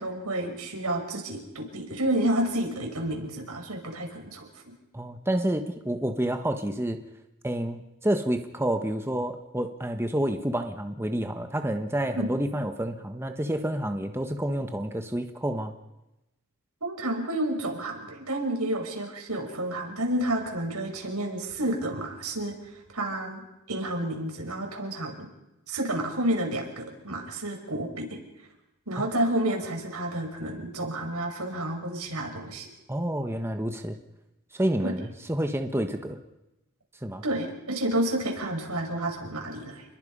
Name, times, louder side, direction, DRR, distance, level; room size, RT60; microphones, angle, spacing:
voice 1, 0.0-4.5 12.1-12.3 16.8-22.5 22.9-23.4 23.7-25.3 25.7-28.2 28.9-32.7 34.8-34.9 37.2-39.8, right 1 dB, 90° right, 3 dB, 5.8 m, -30 dB
voice 2, 4.9-7.0 7.4-15.7 32.9-34.0 34.5-36.2 37.0-37.2, right 1 dB, 10° right, 6 dB, 1.4 m, -29 dB
29.5 x 21.5 x 5.5 m, 0.95 s
head